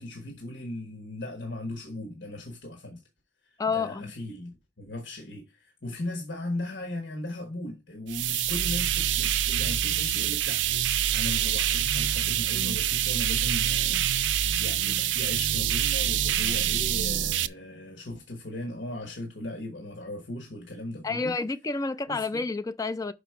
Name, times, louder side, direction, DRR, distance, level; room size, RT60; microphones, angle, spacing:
voice 1, 0.0-3.0 3.4-14.1 14.6-21.3 22.1-22.2, left 1 dB, 80° left, 1.3 m, -37 dB
voice 2, 3.6-4.1 21.0-23.1, left 4 dB, 20° left, 0.3 m, -29 dB
sound 1, 8.1-17.5, right 10 dB, 85° right, 0.4 m, -26 dB
5.6 x 5.0 x 4.7 m
head